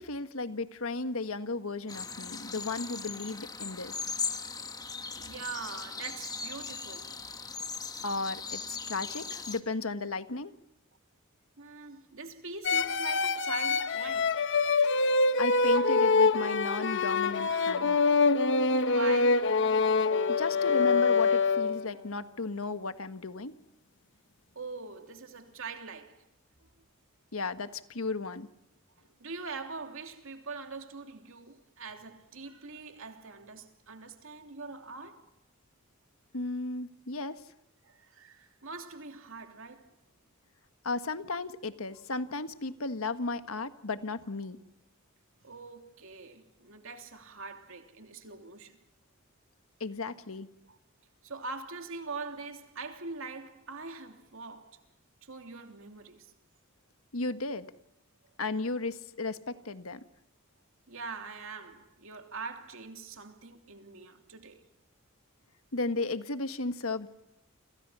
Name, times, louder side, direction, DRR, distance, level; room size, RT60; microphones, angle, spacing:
voice 1, 0.0-4.0 8.0-10.5 15.4-18.0 20.3-23.5 27.3-28.5 36.3-37.4 40.8-44.6 49.8-50.5 57.1-57.7 58.4-60.0 65.7-67.1, left 3 dB, 75° left, 1.6 m, -34 dB
sound 1, 1.9-9.6, left 5 dB, 20° left, 1.4 m, -39 dB
voice 2, 5.0-7.1 9.1-9.2 11.6-14.4 18.9-19.5 24.5-26.2 29.2-35.3 37.8-39.9 45.4-48.8 50.7-50.8 51.2-54.8 55.2-56.3 60.9-64.6, right 4 dB, 70° right, 3.0 m, -43 dB
sound 2, 12.6-22.0, left 4 dB, 60° left, 1.3 m, -25 dB
29.5 x 26.5 x 5.7 m
head